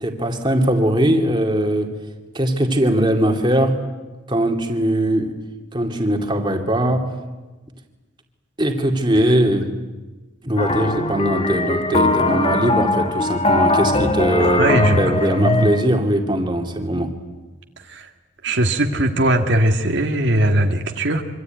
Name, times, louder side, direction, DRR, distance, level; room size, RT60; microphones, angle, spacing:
voice 1, 0.0-1.9 2.3-3.8 4.3-5.3 5.7-7.0 8.6-9.7 10.4-17.1, right 1 dB, 25° right, 3 dB, 2.6 m, -20 dB
sound 1, 10.6-15.9, left 2 dB, 30° left, 1.6 m, -20 dB
voice 2, 14.6-15.7 17.9-18.1 18.4-21.2, right 1 dB, 60° right, 4 dB, 1.8 m, -19 dB
25.5 x 25.0 x 9.2 m, 1.2 s
head